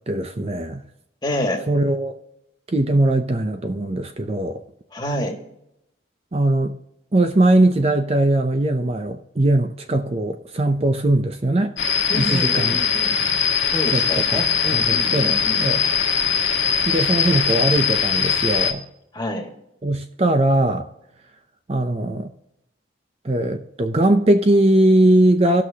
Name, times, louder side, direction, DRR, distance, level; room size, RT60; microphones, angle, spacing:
voice 1, 0.1-0.8 1.7-2.1 2.7-4.6 6.3-6.8 7.1-11.7 12.2-12.8 13.9-14.4 14.7-15.8 16.9-18.8 19.8-20.9 21.7-22.3 23.2-25.6, right 1 dB, 35° right, 0.6 m, -20 dB
voice 2, 1.2-1.6 4.9-5.4 12.1-13.1 13.7-15.6 19.1-19.5, left 1 dB, 20° left, 1.6 m, -27 dB
sound 1, 11.8-18.7, left 6 dB, 85° left, 1.3 m, -21 dB
18.5 x 6.3 x 2.8 m
head